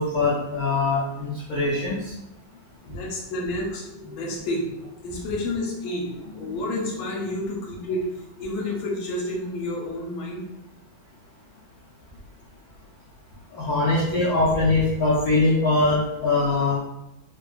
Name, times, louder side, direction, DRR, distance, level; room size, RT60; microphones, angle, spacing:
voice 1, 0.0-2.1 13.5-16.7, left 2 dB, 70° left, -7 dB, 0.9 m, -22 dB
voice 2, 2.8-4.7 5.0-8.0 8.4-10.4, left 1 dB, 85° left, -1 dB, 1.5 m, -30 dB
3.5 x 2.2 x 2.3 m, 0.91 s
omnidirectional pair, 2.2 m